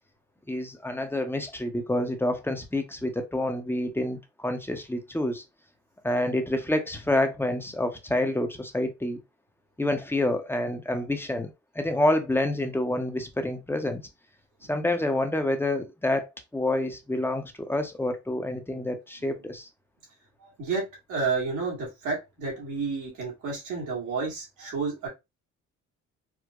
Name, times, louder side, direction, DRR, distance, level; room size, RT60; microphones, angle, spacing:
voice 1, 0.5-5.4 6.0-9.2 9.8-14.0 14.6-19.7, left 1 dB, 5° left, 0.7 m, -28 dB
voice 2, 20.4-25.1, right 4 dB, 85° right, 1.8 m, -31 dB
4.7 x 2.1 x 2.3 m
cardioid pair, 90°, 30 cm